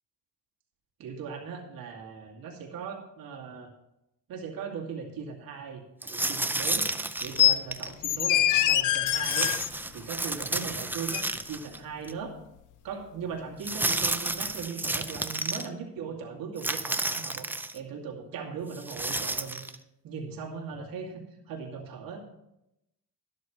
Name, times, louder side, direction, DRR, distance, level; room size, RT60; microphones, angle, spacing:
voice 1, 1.0-3.7 4.3-6.8 7.2-9.6 9.9-12.4 12.8-19.8 20.0-22.2, right 6 dB, 90° right, 0 dB, 2.5 m, -39 dB
sound 1, 6.0-7.9 9.2-11.8 12.1-12.2 13.6-15.7 16.6-17.8 18.7-19.7, right 2 dB, 5° right, 0.4 m, -31 dB
sound 2, 7.4-7.6 8.0-9.7 11.1-11.2, left 12 dB, 65° left, 0.5 m, -23 dB
13.0 x 11.5 x 3.2 m, 0.85 s
cardioid pair, 145°, 34 cm